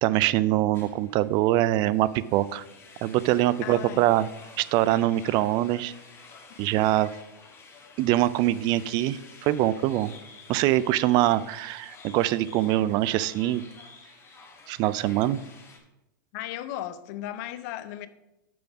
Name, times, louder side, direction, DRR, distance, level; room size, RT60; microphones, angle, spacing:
voice 1, 0.0-2.6 3.0-4.3 4.6-5.9 6.6-7.1 8.0-10.1 10.5-13.6 14.7-15.4, right 14 dB, 40° right, 0.4 m, -23 dB
sound 1, 0.7-15.8, left 4 dB, 20° left, 1.3 m, -50 dB
voice 2, 3.6-4.1 16.3-18.1, left 12 dB, 50° left, 0.6 m, -36 dB
6.1 x 5.1 x 6.0 m
hypercardioid pair, 120°, 11 cm